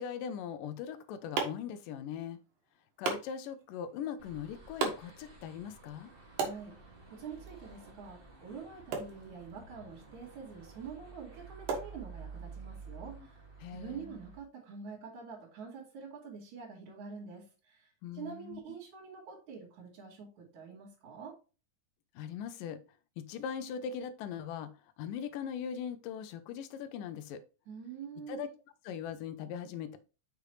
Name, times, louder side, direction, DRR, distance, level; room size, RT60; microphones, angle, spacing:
voice 1, 0.0-2.4 3.0-6.1 13.2-13.3 13.6-14.2 18.0-18.6 22.2-22.8 23.2-24.7 25.0-27.4 28.3-28.5 28.8-30.0, left 8 dB, 75° left, 10 dB, 2.3 m, -40 dB
sound 1, 0.7-12.6, right 5 dB, 80° right, 3.3 m, -42 dB
sound 2, 4.2-14.4, right 4 dB, 20° right, 1.7 m, -51 dB
voice 2, 6.4-13.4 13.7-21.4 27.7-28.5, right 6 dB, 55° right, -9 dB, 3.6 m, -46 dB
6.7 x 6.3 x 3.2 m, 0.33 s
omnidirectional pair, 4.0 m